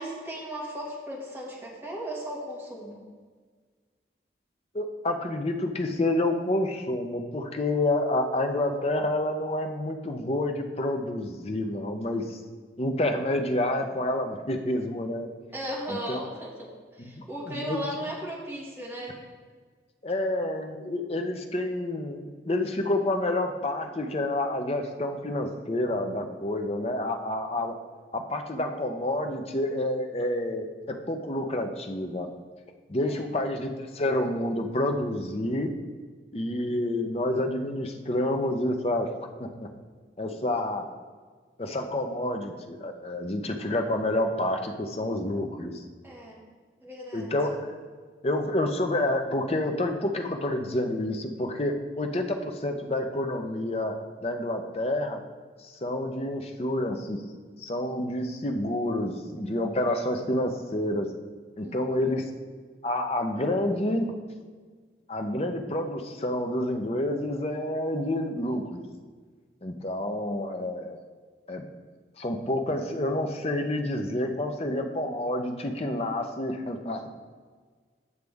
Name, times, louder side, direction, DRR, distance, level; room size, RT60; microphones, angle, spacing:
voice 1, 0.0-3.0 15.5-19.2 33.0-33.3 40.5-40.6 46.0-46.4 46.8-47.3 61.6-62.0, equal, 10° right, -5 dB, 2.0 m, -37 dB
voice 2, 4.7-12.4 12.8-15.3 15.9-16.2 17.0-17.8 20.0-27.7 28.1-32.3 32.9-35.7 36.3-39.1 39.4-39.7 40.2-40.9 41.6-45.7 47.1-47.8 48.2-53.9 54.2-55.2 55.6-57.2 57.6-61.1 61.6-62.3 62.8-64.1 65.1-68.8 69.6-71.0 71.5-71.6 72.2-77.1, left 1 dB, 35° left, 4 dB, 0.7 m, -28 dB
9.5 x 6.5 x 3.5 m, 1.5 s
head